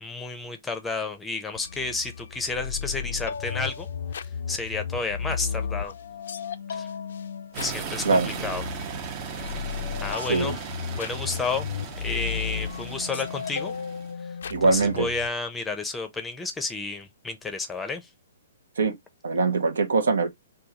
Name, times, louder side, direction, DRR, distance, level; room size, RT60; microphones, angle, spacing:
voice 1, 0.0-3.9 4.1-5.9 6.7-6.9 7.6-8.8 9.6-10.6 10.9-11.7 12.0-13.7 14.7-18.1, left 3 dB, 10° left, 0.6 m, -31 dB
sound 1, 1.6-15.3, left 7 dB, 70° left, 0.4 m, -34 dB
sound 2, 7.5-14.1, right 8 dB, 35° right, 0.6 m, -37 dB
voice 2, 10.2-10.6 14.5-15.1 18.8-18.9 19.2-20.3, right 3 dB, 80° right, 0.8 m, -22 dB
3.5 x 2.3 x 2.8 m
hypercardioid pair, 140°, 0 cm